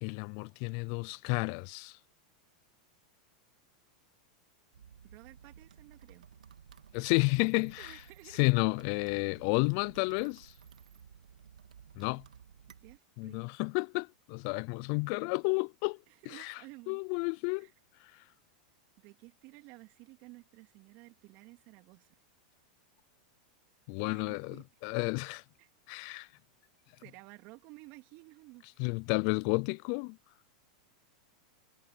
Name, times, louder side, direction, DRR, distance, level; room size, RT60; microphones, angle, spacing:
voice 1, 0.0-2.0 6.9-7.9 8.4-10.5 12.0-12.2 13.2-16.0 16.4-16.5 16.9-17.7 23.9-24.5 24.8-25.4 25.9-26.3 28.8-30.2, left 33 dB, 55° left, 0.5 m, -31 dB
sound 1, 4.7-13.0, right 8 dB, 85° right, 2.5 m, -56 dB
voice 2, 5.0-6.3 7.8-8.5 8.8-9.0 12.8-13.4 16.1-17.0 17.6-17.7 19.0-22.2 24.1-24.7 25.6-25.7 27.0-28.9, right 24 dB, 50° right, 3.4 m, -54 dB
hypercardioid pair, 105°, 4 cm